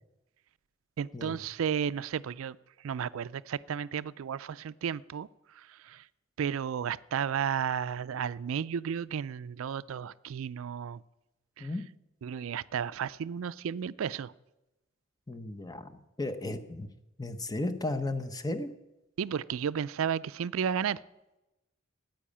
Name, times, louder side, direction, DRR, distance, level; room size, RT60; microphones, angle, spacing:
voice 1, 1.0-2.6 2.8-5.3 5.6-6.0 6.4-11.0 11.6-11.7 12.2-14.3 19.2-21.0, right 7 dB, 75° right, 0.4 m, -33 dB
voice 2, 15.3-15.9 16.2-16.9 17.2-18.7, left 2 dB, 20° left, 0.7 m, -34 dB
10.5 x 9.2 x 8.5 m
head